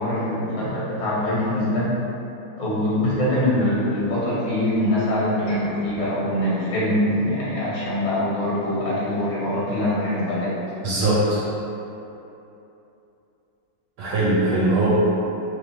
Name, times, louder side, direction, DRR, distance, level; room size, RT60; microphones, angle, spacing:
voice 1, 0.0-1.9 2.6-10.5, left 1 dB, 70° left, -8 dB, 1.6 m, -23 dB
voice 2, 10.8-11.4 14.0-14.9, right 2 dB, 85° right, -7 dB, 1.4 m, -21 dB
3.4 x 3.1 x 2.6 m, 2.9 s
omnidirectional pair, 2.3 m